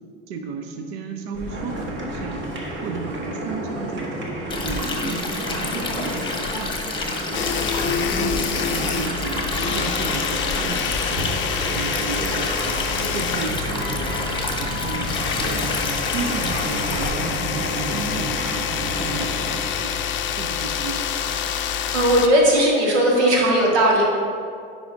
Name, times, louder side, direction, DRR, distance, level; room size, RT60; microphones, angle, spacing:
voice 1, 0.3-2.4 2.8-4.2 4.6-6.8 7.8-9.4 9.7-11.3 11.7-12.9 13.1-14.1 14.6-21.6, right 5 dB, 70° right, 5 dB, 0.7 m, -33 dB
sound 1, 1.3-19.8, right 1 dB, 35° right, 1.3 m, -31 dB
Stream, 4.5-17.1, left 3 dB, 15° left, 1.1 m, -29 dB
sound 2, 7.3-22.3, left 8 dB, 35° left, 0.5 m, -27 dB
voice 2, 21.6-24.0, right 1 dB, 90° right, -3 dB, 1.5 m, -18 dB
9.9 x 4.9 x 2.6 m, 2.3 s
hypercardioid pair, 80°, 33 cm